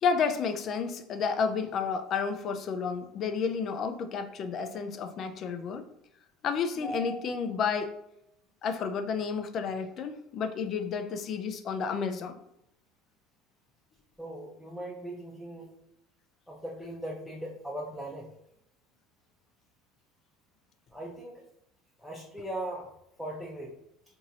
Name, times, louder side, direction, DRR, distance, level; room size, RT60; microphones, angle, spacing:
voice 1, 0.0-5.8 6.4-7.9 8.6-12.4, left 5 dB, 45° left, 7 dB, 0.4 m, -31 dB
voice 2, 14.2-15.7 16.5-18.3 20.9-21.4 22.0-22.9 23.2-23.7, right 1 dB, ahead, -4 dB, 0.6 m, -39 dB
3.0 x 2.6 x 2.6 m, 0.78 s
supercardioid pair, 100°, 0 cm